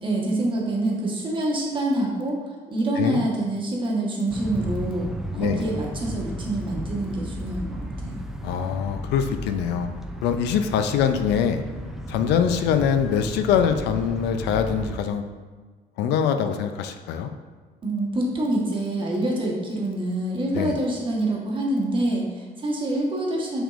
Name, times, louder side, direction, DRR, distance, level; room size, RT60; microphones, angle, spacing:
voice 1, 0.0-2.4 2.7-8.2 17.8-23.6, right 1 dB, 30° right, -2 dB, 1.1 m, -26 dB
sound 1, 4.3-15.0, equal, ahead, 0.3 m, -34 dB
voice 2, 8.4-9.9 10.2-11.6 12.1-15.2 16.0-17.3 20.5-20.8, left 7 dB, 80° left, 8 dB, 0.4 m, -23 dB
5.8 x 3.6 x 2.4 m, 1.4 s
cardioid pair, 110°, 17 cm